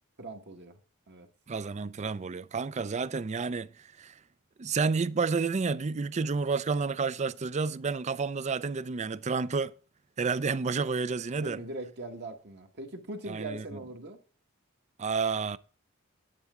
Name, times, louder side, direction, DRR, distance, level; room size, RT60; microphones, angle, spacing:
voice 1, 0.2-0.8 1.1-1.3 11.4-14.2, right 2 dB, 55° right, 1.7 m, -41 dB
voice 2, 1.5-4.1 4.6-9.7 10.2-11.6 13.3-13.6 15.0-15.6, right 4 dB, 35° right, 0.4 m, -30 dB
10.0 x 9.4 x 3.7 m
head